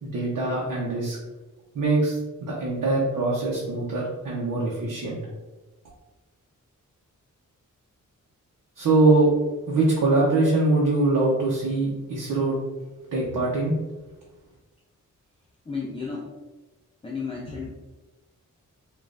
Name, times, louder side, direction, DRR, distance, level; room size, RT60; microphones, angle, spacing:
voice 1, 0.0-1.2 1.7-5.2 8.8-9.3 9.7-12.6 13.1-13.7, right 2 dB, 85° right, -5 dB, 0.8 m, -23 dB
voice 2, 15.7-16.3 17.0-17.7, left 4 dB, 15° left, -5 dB, 0.5 m, -32 dB
5.1 x 2.5 x 2.5 m, 1.2 s
wide cardioid pair, 145°, 31 cm